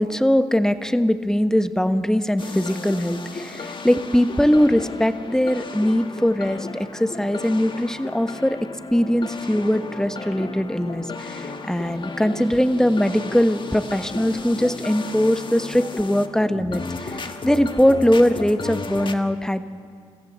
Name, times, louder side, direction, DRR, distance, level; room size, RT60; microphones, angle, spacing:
voice 1, 0.0-8.6 8.9-19.7, equal, 5° left, 10 dB, 1.3 m, -21 dB
sound 1, 2.4-19.1, left 3 dB, 40° left, 1.7 m, -34 dB
28.0 x 14.5 x 7.5 m, 2.1 s
supercardioid pair, 50°, 13 cm